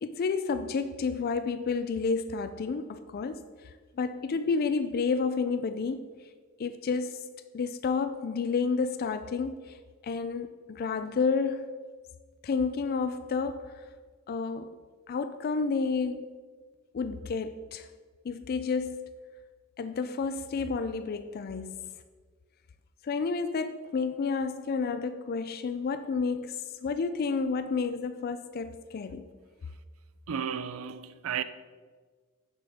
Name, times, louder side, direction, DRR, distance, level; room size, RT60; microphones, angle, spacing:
voice 1, 0.0-3.5 4.0-6.1 6.6-7.2 7.5-9.8 10.0-11.7 12.4-13.7 14.3-14.7 15.1-16.3 16.9-17.9 18.2-19.0 19.8-21.9 23.0-29.3, left 4 dB, 45° left, 0.4 m, -30 dB
voice 2, 30.3-31.4, right 7 dB, 80° right, 0.5 m, -33 dB
9.3 x 7.1 x 3.5 m
head